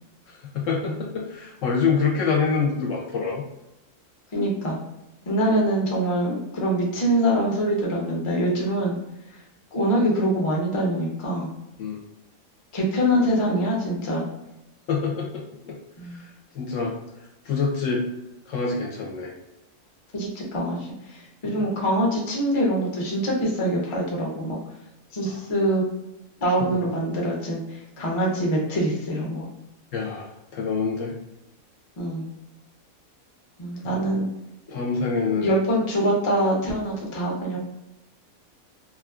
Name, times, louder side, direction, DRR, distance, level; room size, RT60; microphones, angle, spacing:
voice 1, 0.3-3.4 11.8-12.0 14.9-15.8 16.1-17.0 17.4-18.1 18.5-19.3 21.4-21.6 25.2-25.4 29.9-31.2 33.8-33.9 34.7-35.5, left 5 dB, 70° left, 0 dB, 0.9 m, -26 dB
voice 2, 4.3-4.8 5.3-8.9 9.7-11.5 12.7-14.3 16.0-16.2 20.1-24.6 25.1-25.8 26.4-27.6 28.0-29.5 32.0-32.3 33.6-34.3 35.4-37.6, right 1 dB, 35° left, -2 dB, 0.5 m, -24 dB
3.0 x 2.5 x 2.3 m, 0.93 s
omnidirectional pair, 1.5 m